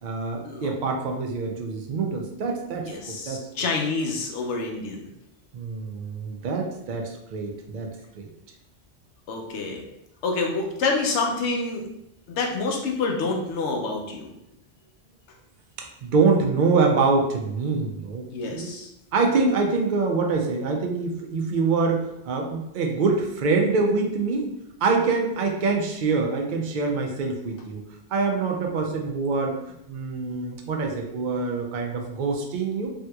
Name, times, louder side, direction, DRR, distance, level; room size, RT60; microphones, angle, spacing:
voice 1, 0.0-2.9 3.3-3.4 5.5-7.9 8.2-8.3 15.8-18.7 19.1-24.5 24.8-27.8 28.1-29.6 29.9-32.9, right 4 dB, 55° right, 1 dB, 0.6 m, -25 dB
voice 2, 2.8-5.1 9.3-9.8 10.2-11.9 12.3-14.3 18.2-18.9, left 3 dB, 85° left, 1 dB, 1.0 m, -27 dB
3.5 x 2.9 x 2.2 m, 0.82 s
omnidirectional pair, 1.1 m